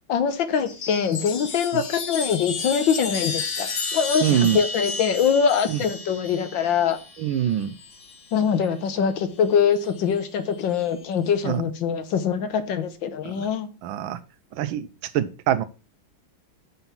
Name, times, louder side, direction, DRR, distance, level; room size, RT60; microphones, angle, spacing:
voice 1, 0.1-7.0 8.3-13.7, left 7 dB, 70° left, 10 dB, 1.7 m, -23 dB
Chime, 0.6-8.4 9.6-10.2, left 4 dB, 55° left, 2.0 m, -32 dB
voice 2, 4.2-4.6 5.7-5.8 7.2-7.7 11.4-11.6 13.3-13.5 13.8-14.2 14.5-14.9 15.1-15.6, right 10 dB, 80° right, 13 dB, 1.4 m, -23 dB
6.8 x 5.6 x 5.9 m, 0.32 s
omnidirectional pair, 2.2 m